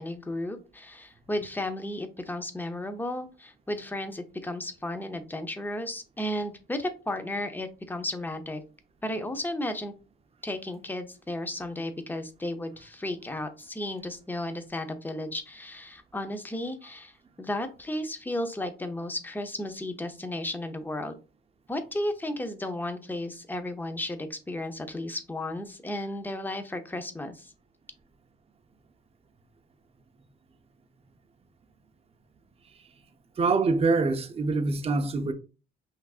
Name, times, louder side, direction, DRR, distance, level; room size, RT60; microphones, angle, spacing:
voice 1, 0.0-8.6 9.0-9.9 10.4-21.2 21.7-27.5, left 1 dB, 10° left, 0.6 m, -34 dB
voice 2, 33.4-35.3, right 3 dB, 30° right, 0.6 m, -25 dB
5.7 x 2.5 x 2.4 m
cardioid pair, 90°, 20 cm